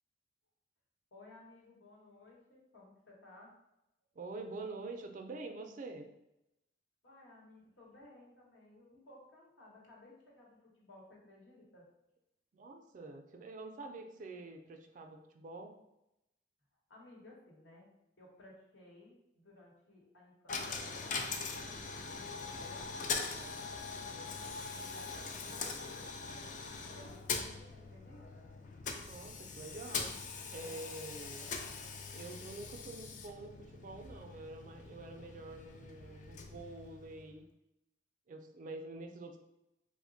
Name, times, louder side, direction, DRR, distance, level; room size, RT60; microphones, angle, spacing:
voice 1, 1.1-3.5 7.0-11.9 16.9-17.9 18.2-23.5 24.1-28.5, left 2 dB, 80° left, -3 dB, 1.0 m, -58 dB
voice 2, 4.1-6.1 12.5-15.8 29.0-30.1 30.5-31.5 32.1-37.5 38.3-39.4, right 3 dB, 45° right, 5 dB, 0.4 m, -47 dB
Coin (dropping), 20.5-37.4, left 4 dB, 45° left, 0.3 m, -42 dB
2.9 x 2.1 x 3.8 m, 0.89 s
head